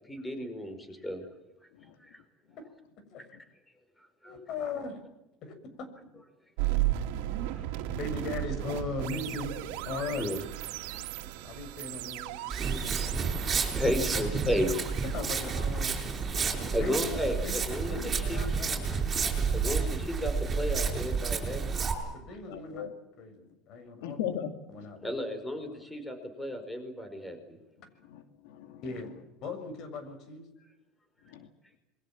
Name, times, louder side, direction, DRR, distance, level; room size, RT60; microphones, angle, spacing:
voice 1, 0.1-1.2 2.1-2.2 4.2-4.3 7.5-7.6 10.2-10.4 10.9-11.0 13.7-14.8 16.7-18.4 19.5-21.8 25.0-27.6, left 1 dB, 10° left, 8 dB, 5.0 m, -33 dB
voice 2, 4.2-5.0 5.4-5.9 7.9-9.5 9.8-10.3 11.4-13.5 13.9-14.2 15.0-16.0 16.5-17.1 17.4-19.3 22.0-22.9 23.2-24.2 24.7-25.1 28.8-29.1 29.4-30.5, left 3 dB, 50° left, 10 dB, 7.0 m, -39 dB
sound 1, 6.6-17.6, right 15 dB, 80° right, 2.6 m, -36 dB
Walk footsteps, 12.5-21.9, right 5 dB, 20° right, 7.5 m, -30 dB
voice 3, 22.5-22.9 24.0-24.5 28.1-28.8 31.3-31.5, left 9 dB, 90° left, 8 dB, 2.4 m, -37 dB
28.0 x 23.0 x 7.5 m, 0.97 s
cardioid pair, 140°, 0 cm